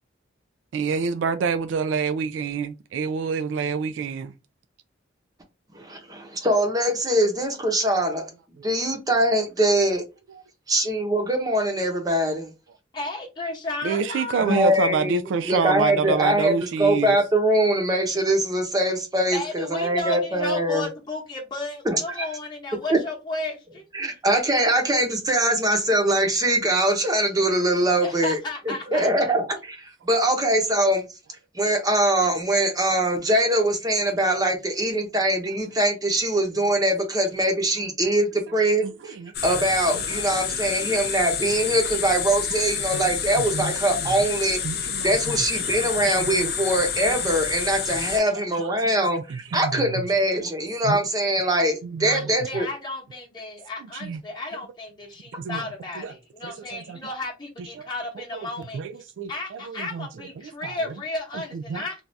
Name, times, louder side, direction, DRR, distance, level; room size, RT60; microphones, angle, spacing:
voice 1, 0.7-4.3 8.6-8.9 10.3-10.4 13.8-17.2 38.0-38.1 38.5-38.6 38.8-39.6 39.9-40.4 40.7-41.0 41.5-42.0 42.7-44.3 44.6-47.4 48.3-50.1 50.4-50.5 50.8-51.1 51.8-52.3 53.8-54.2 55.4-56.2 56.4-57.0 57.6-57.9 58.1-61.0 61.3-61.8, right 5 dB, 80° right, 0.3 m, -29 dB
voice 2, 5.7-8.3 8.6-10.0 10.7-12.5 14.4-15.2 15.5-16.5 16.8-20.9 21.8-22.2 22.9-23.0 23.9-28.4 28.9-31.0 31.5-39.1 39.4-44.6 45.0-52.7, right 1 dB, 20° right, 0.7 m, -22 dB
voice 3, 12.9-14.6 19.3-23.8 24.1-24.2 28.0-29.2 52.0-58.8 59.3-62.0, left 2 dB, 25° left, 0.9 m, -33 dB
sound 1, 39.3-48.2, left 7 dB, 55° left, 0.5 m, -29 dB
2.6 x 2.3 x 3.1 m
head